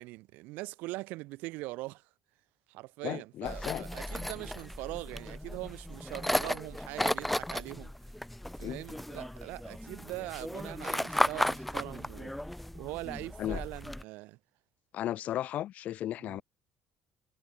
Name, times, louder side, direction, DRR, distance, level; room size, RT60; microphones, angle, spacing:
voice 1, 0.0-2.0 2.7-7.9 8.6-12.3 12.7-14.4 16.2-16.4, right 21 dB, 85° right, 4.4 m, -42 dB
voice 2, 3.0-3.9 8.6-8.8 13.4-13.6 14.9-16.4, left 12 dB, 60° left, 1.7 m, -35 dB
sound 1, 3.4-14.0, left 1 dB, 5° left, 1.2 m, -35 dB
cardioid pair, 120°, 3 cm